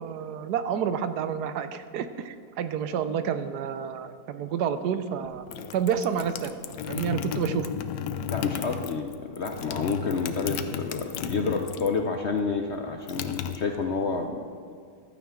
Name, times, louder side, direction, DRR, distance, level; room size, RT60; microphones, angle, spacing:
voice 1, 0.0-5.5 5.7-6.6 6.9-7.7, right 8 dB, 75° right, 11 dB, 1.2 m, -29 dB
sound 1, 5.2-12.0 12.3-14.2, left 8 dB, 85° left, 1.3 m, -34 dB
voice 2, 8.3-14.8, left 4 dB, 60° left, 4 dB, 0.7 m, -29 dB
14.5 x 12.0 x 3.7 m, 2.2 s
omnidirectional pair, 1.8 m